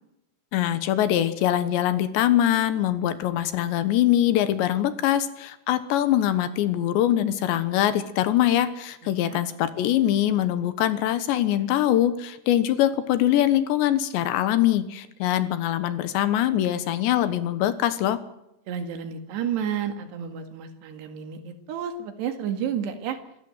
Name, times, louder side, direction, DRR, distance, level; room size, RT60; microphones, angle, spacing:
voice 1, 0.5-18.2, left 12 dB, 80° left, 12 dB, 3.4 m, -23 dB
voice 2, 9.0-9.4 18.7-23.2, right 8 dB, 70° right, 7 dB, 4.0 m, -31 dB
26.0 x 13.5 x 7.9 m, 0.86 s
omnidirectional pair, 5.2 m